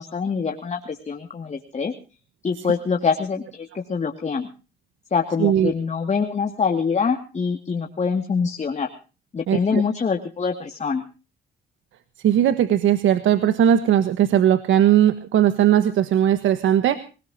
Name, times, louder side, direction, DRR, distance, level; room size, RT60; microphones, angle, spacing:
voice 1, 0.0-1.9 2.4-4.5 5.1-8.9 9.3-11.0, left 5 dB, 35° left, 4 dB, 2.2 m, -24 dB
voice 2, 5.4-5.7 9.5-9.8 12.2-17.0, right 10 dB, 80° right, 12 dB, 1.4 m, -18 dB
25.5 x 18.5 x 2.8 m, 0.35 s
cardioid pair, 90°, 20 cm